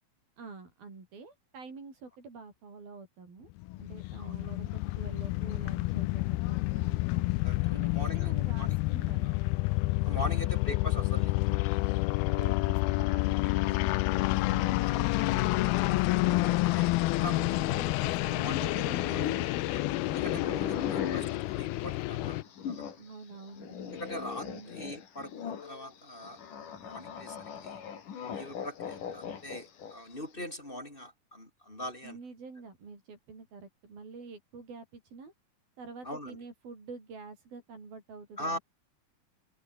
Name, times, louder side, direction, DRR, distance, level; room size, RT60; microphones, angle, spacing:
voice 1, 0.4-3.5 3.8-7.0 7.7-9.3 10.2-10.5 12.2-16.4 17.2-19.5 23.0-23.8 24.0-24.7 32.0-35.3 35.8-38.6, right 4 dB, 75° right, 8.8 m, -47 dB
sound 1, 3.6-22.4, left 20 dB, 85° left, 2.6 m, -29 dB
voice 2, 7.4-8.8 9.2-9.4 10.0-11.5 16.7-16.9 17.2-17.8 18.4-18.6 19.1-19.2 19.7-22.4 22.7-22.9 23.8-26.4 26.8-27.8 28.4-32.2 36.0-36.4 38.4-38.6, left 1 dB, 15° left, 4.4 m, -42 dB
sound 2, 14.3-23.0 23.3-30.1, left 7 dB, 60° left, 4.3 m, -40 dB
omnidirectional pair, 4.3 m